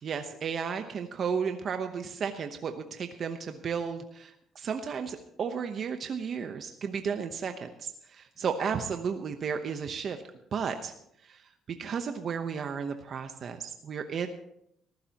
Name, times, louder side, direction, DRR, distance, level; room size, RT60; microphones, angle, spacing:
voice 1, 0.0-10.2 10.5-10.9 11.2-11.5 11.8-14.3, right 6 dB, 45° right, 6 dB, 0.9 m, -33 dB
19.0 x 14.5 x 3.0 m, 0.75 s
cardioid pair, 110°, 0 cm